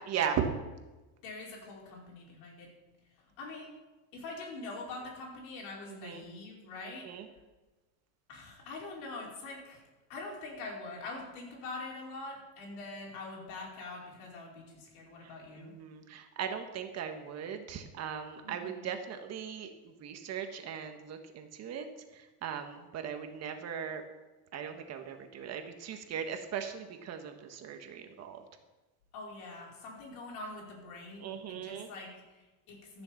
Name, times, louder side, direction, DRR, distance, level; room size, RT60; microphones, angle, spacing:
voice 1, 0.1-0.4 5.9-6.2 7.0-7.3 15.2-21.9 22.1-24.0 24.5-28.4 31.2-31.9, right 8 dB, 40° right, 6 dB, 1.5 m, -38 dB
voice 2, 1.2-2.7 3.4-3.7 4.1-7.1 8.3-9.8 10.1-15.7 18.4-18.9 29.1-33.0, left 3 dB, 65° left, -2 dB, 5.0 m, -44 dB
14.0 x 6.9 x 7.2 m, 1.2 s
supercardioid pair, 130°, 39 cm